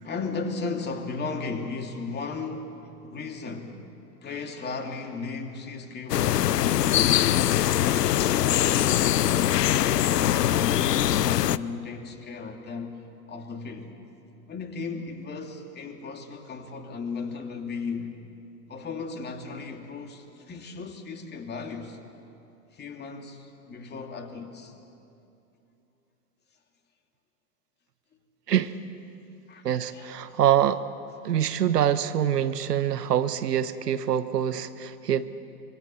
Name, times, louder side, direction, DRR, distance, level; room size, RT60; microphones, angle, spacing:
voice 1, 0.0-2.8 3.0-3.8 4.2-7.3 7.8-13.0 13.3-13.9 14.5-18.2 18.7-22.0 22.7-24.8 29.5-29.7 29.9-30.4, left 4 dB, 20° left, 4 dB, 2.6 m, -36 dB
sound 1, 6.1-11.6, left 12 dB, 80° left, 0.7 m, -22 dB
voice 2, 29.6-30.8 31.2-35.3, right 10 dB, 80° right, 13 dB, 1.3 m, -25 dB
25.0 x 24.0 x 7.0 m, 2.8 s
hypercardioid pair, 110°, 47 cm